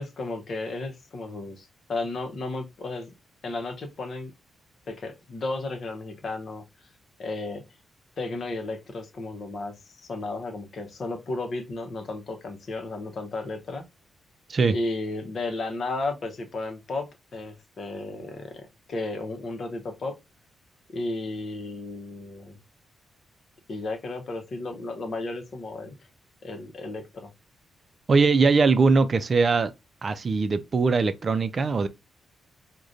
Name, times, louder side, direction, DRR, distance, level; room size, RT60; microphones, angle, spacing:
voice 1, 0.0-3.1 3.4-4.3 4.9-6.7 7.2-7.7 8.2-13.8 14.7-20.2 20.9-22.6 23.7-25.9 26.4-27.3, left 2 dB, 60° left, 0.7 m, -33 dB
voice 2, 28.1-29.7 30.0-31.9, right 4 dB, 50° right, 0.4 m, -21 dB
4.9 x 2.2 x 2.4 m
hypercardioid pair, 45°, 0 cm